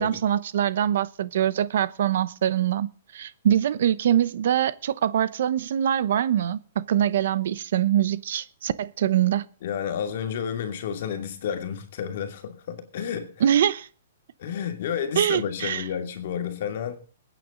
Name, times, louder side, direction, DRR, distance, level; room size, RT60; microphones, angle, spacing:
voice 1, 0.0-9.4 13.4-13.9 15.2-15.8, right 10 dB, 55° right, 0.9 m, -24 dB
voice 2, 9.6-13.3 14.4-16.9, left 8 dB, 50° left, 2.5 m, -31 dB
21.0 x 9.3 x 3.9 m
hypercardioid pair, 170°, 0 cm